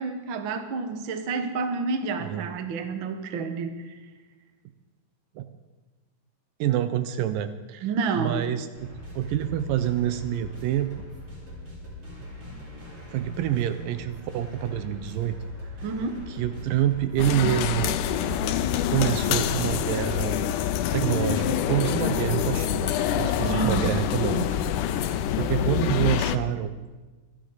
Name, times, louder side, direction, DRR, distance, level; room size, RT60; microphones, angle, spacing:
voice 1, 0.0-4.0 7.8-8.5 15.8-16.3 23.4-23.9, right 4 dB, 65° right, 7 dB, 1.2 m, -29 dB
voice 2, 6.6-7.9 8.1-10.9 13.1-15.4 16.3-18.0 18.9-20.4 20.9-24.5 25.3-26.7, right 11 dB, 80° right, 10 dB, 2.3 m, -27 dB
sound 1, 8.7-25.7, left 2 dB, 40° right, 4.7 m, -41 dB
sound 2, 17.2-26.4, left 10 dB, 80° left, 2.1 m, -26 dB
25.5 x 11.0 x 3.9 m, 1.3 s
omnidirectional pair, 3.9 m